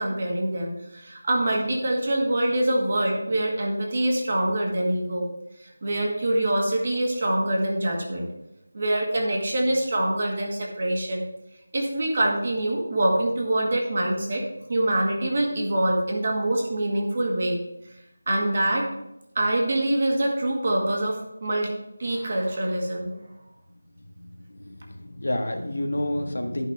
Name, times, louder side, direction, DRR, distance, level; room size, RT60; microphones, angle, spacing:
voice 1, 0.0-5.3 5.6-8.3 8.7-11.2 11.7-14.4 14.7-17.6 18.3-18.9 19.4-21.7 22.0-23.1, right 1 dB, 35° right, -1 dB, 1.9 m, -25 dB
voice 2, 24.6-26.6, left 1 dB, 80° left, 4 dB, 1.5 m, -29 dB
12.0 x 5.7 x 3.5 m, 0.85 s
figure-of-eight pair, 175°, 0 cm